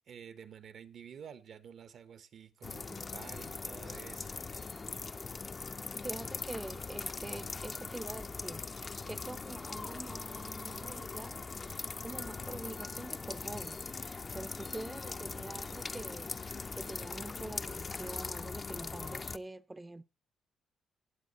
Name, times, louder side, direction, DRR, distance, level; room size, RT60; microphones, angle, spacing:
voice 1, 0.1-4.8, right 7 dB, 60° right, 1.0 m, -51 dB
sound 1, 2.6-19.4, left 4 dB, 30° left, 0.5 m, -41 dB
voice 2, 5.9-20.0, right 2 dB, 15° right, 0.6 m, -45 dB
17.5 x 7.5 x 4.1 m
cardioid pair, 90°, 0 cm